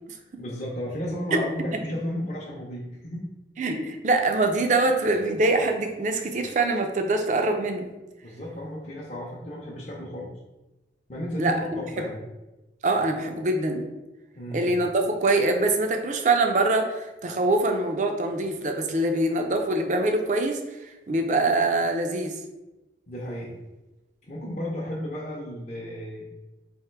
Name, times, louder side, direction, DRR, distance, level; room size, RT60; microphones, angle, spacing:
voice 1, 0.4-3.2 8.2-10.3 11.1-12.2 14.3-14.7 23.1-23.5 24.2-26.3, equal, 40° left, -5 dB, 0.6 m, -33 dB
voice 2, 3.6-7.9 11.4-12.1 12.8-13.9 14.5-20.8 21.1-22.4, right 2 dB, 45° right, 4 dB, 0.4 m, -24 dB
3.5 x 2.6 x 4.5 m, 1.0 s
head